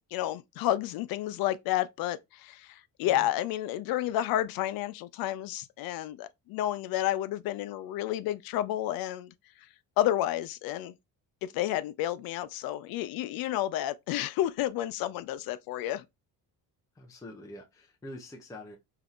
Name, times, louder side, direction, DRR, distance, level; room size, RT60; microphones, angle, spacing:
voice 1, 0.0-9.3 10.0-10.9 11.4-16.0, left 13 dB, 80° left, 0.5 m, -31 dB
voice 2, 16.9-18.8, left 1 dB, 10° left, 0.5 m, -45 dB
3.5 x 2.8 x 2.4 m
cardioid pair, 145°, 35 cm